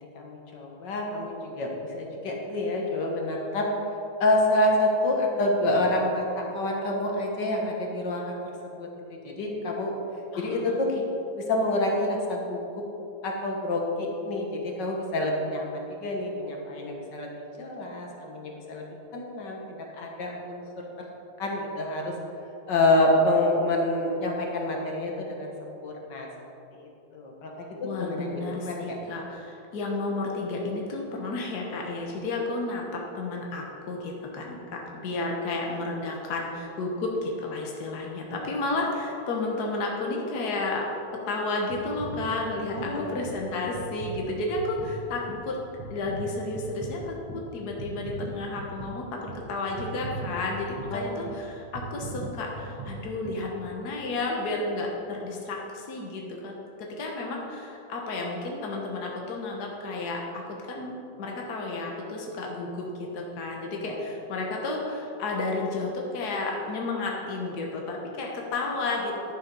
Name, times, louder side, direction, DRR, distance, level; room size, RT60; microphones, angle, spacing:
voice 1, 0.0-3.7 4.2-8.4 8.6-9.9 10.4-10.9 11.4-12.8 13.2-18.9 19.1-20.6 21.4-22.1 22.7-26.3 26.7-29.0 42.7-43.1 50.9-51.4 64.1-64.2, left 1 dB, 50° left, 0 dB, 1.4 m, -28 dB
voice 2, 10.3-10.8 27.8-40.8 41.3-45.6 45.9-56.5 56.8-69.1, left 2 dB, 70° left, -1 dB, 0.9 m, -32 dB
sound 1, 41.7-54.1 54.7-54.8, right 3 dB, 50° right, 1.8 m, -40 dB
11.0 x 7.5 x 5.4 m, 2.8 s
omnidirectional pair, 3.4 m